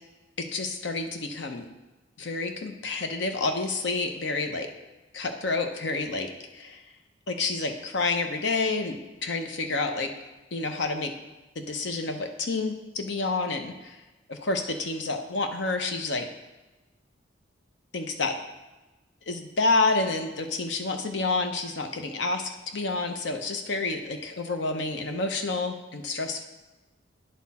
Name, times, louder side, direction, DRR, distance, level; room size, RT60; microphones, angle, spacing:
voice 1, 0.4-1.7 2.2-4.7 5.1-6.8 7.3-10.1 10.5-11.1 11.6-14.0 14.3-16.3 17.9-18.4 19.3-26.4, left 3 dB, 65° left, 5 dB, 0.7 m, -29 dB
10.5 x 4.3 x 4.1 m, 1.1 s
head